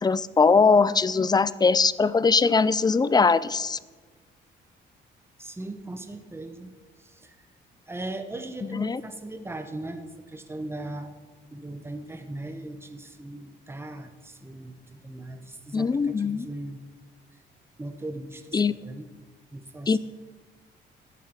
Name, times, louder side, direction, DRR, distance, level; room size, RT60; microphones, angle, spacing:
voice 1, 0.0-3.8 8.6-9.0 15.7-16.5 18.5-18.7 19.9-20.0, left 4 dB, 20° left, 18 dB, 0.4 m, -21 dB
voice 2, 5.4-6.7 7.0-7.3 7.9-11.1 11.5-16.8 17.8-19.1 19.5-20.0, right 2 dB, 10° right, 7 dB, 1.2 m, -38 dB
12.5 x 8.3 x 5.9 m, 1.3 s
cardioid pair, 90°, 20 cm